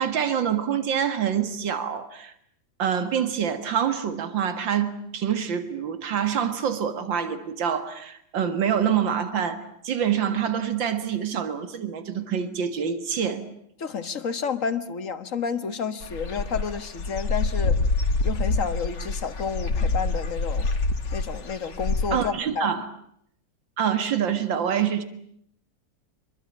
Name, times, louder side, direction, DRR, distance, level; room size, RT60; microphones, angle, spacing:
voice 1, 0.0-2.3 2.8-13.5 22.1-22.8 23.8-25.0, right 8 dB, 75° right, 2.6 m, -26 dB
voice 2, 13.8-17.8 18.2-20.7 21.1-22.8, left 6 dB, 45° left, 1.7 m, -30 dB
Dog / Bird, 16.0-22.3, left 3 dB, 65° left, 2.6 m, -26 dB
26.0 x 23.0 x 8.6 m
omnidirectional pair, 2.1 m